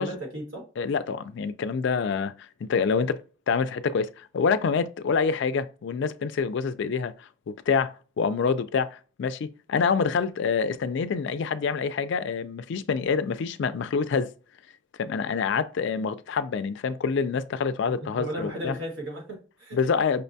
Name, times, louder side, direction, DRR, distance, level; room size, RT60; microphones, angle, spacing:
voice 1, 0.0-0.6 17.9-19.8, right 1 dB, 65° right, 1.5 m, -35 dB
voice 2, 0.8-3.2 3.5-14.3 15.0-18.8 19.7-20.2, left 5 dB, 55° left, 0.3 m, -26 dB
5.5 x 2.2 x 2.6 m
head